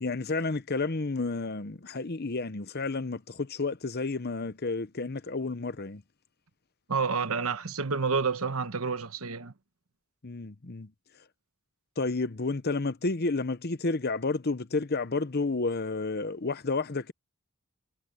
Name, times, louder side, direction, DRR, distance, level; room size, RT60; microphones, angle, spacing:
voice 1, 0.0-6.0 10.2-10.9 12.0-17.1, left 3 dB, 45° left, 0.9 m, -31 dB
voice 2, 6.9-9.5, right 5 dB, 80° right, 1.2 m, -29 dB
head